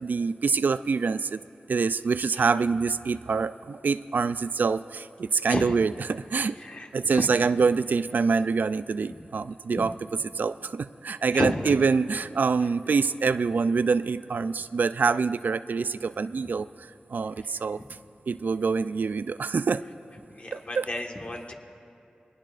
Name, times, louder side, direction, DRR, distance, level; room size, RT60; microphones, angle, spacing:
voice 1, 0.0-1.4 1.7-6.6 6.9-9.9 10.3-17.8 18.3-19.8 20.5-20.9, right 5 dB, 70° right, 13 dB, 0.3 m, -25 dB
voice 2, 6.6-7.4 9.8-9.9 11.3-11.7 17.4-17.5 20.3-21.5, left 1 dB, 40° left, 2 dB, 1.5 m, -32 dB
23.0 x 19.5 x 2.5 m, 2.7 s
wide cardioid pair, 75°, 3 cm